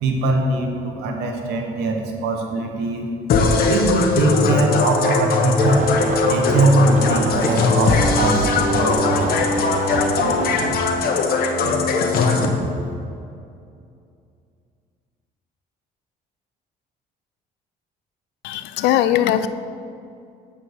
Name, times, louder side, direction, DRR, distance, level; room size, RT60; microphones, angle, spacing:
voice 1, 0.0-3.1 3.7-5.9 6.3-9.4 10.2-10.4 10.9-11.1 11.6-11.8 12.3-12.7, right 2 dB, 85° right, 2 dB, 1.4 m, -22 dB
sound 1, 3.3-12.5, left 4 dB, 60° left, 1.1 m, -19 dB
sound 2, 5.6-10.8, right 5 dB, 45° right, 0.7 m, -28 dB
voice 2, 18.4-19.5, left 12 dB, 90° left, 13 dB, 0.5 m, -19 dB
8.8 x 7.6 x 4.7 m, 2.5 s
cardioid pair, 110°, 17 cm